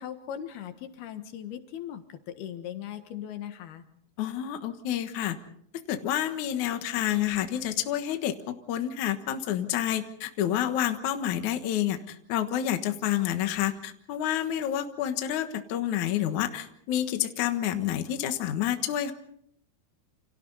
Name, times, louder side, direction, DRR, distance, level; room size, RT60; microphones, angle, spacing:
voice 1, 0.0-3.8, left 10 dB, 80° left, 8 dB, 3.4 m, -39 dB
voice 2, 4.2-5.4 5.7-19.1, left 11 dB, 60° left, 7 dB, 2.5 m, -29 dB
29.0 x 28.0 x 4.1 m, 0.68 s
omnidirectional pair, 4.4 m